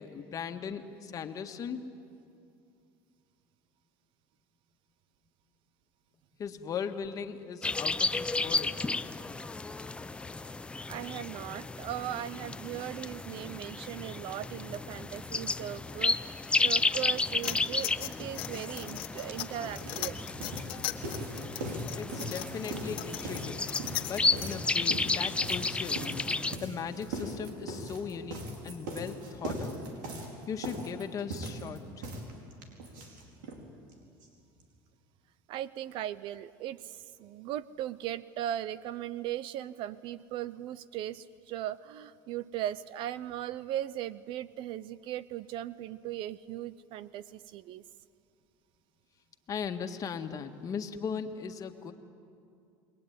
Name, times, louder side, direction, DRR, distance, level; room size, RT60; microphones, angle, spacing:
voice 1, 0.0-1.8 6.4-8.8 22.0-23.6 24.1-26.2 26.6-29.8 30.5-32.1 49.5-51.9, left 6 dB, 35° left, 6 dB, 1.7 m, -38 dB
sound 1, 7.6-26.6, left 3 dB, 10° left, 0.6 m, -33 dB
voice 2, 10.9-20.2 35.5-47.8, right 12 dB, 60° right, 18 dB, 0.6 m, -38 dB
sound 2, 17.4-24.7, left 15 dB, 60° left, 1.4 m, -39 dB
sound 3, 18.9-19.0 19.2-33.6 33.9-34.0 34.2-34.3 34.6-34.7, right 1 dB, 90° right, 4.7 m, -39 dB
28.0 x 22.0 x 9.5 m, 2.4 s
supercardioid pair, 125°, 10 cm